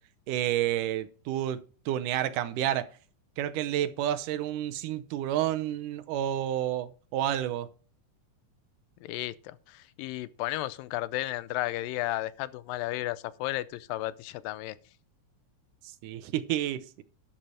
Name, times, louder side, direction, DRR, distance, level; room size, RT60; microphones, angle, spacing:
voice 1, 0.3-2.9 3.4-7.7 16.0-17.0, right 12 dB, 75° right, 2.3 m, -30 dB
voice 2, 9.0-14.8, left 16 dB, 90° left, 2.3 m, -33 dB
11.5 x 7.6 x 4.3 m
omnidirectional pair, 3.9 m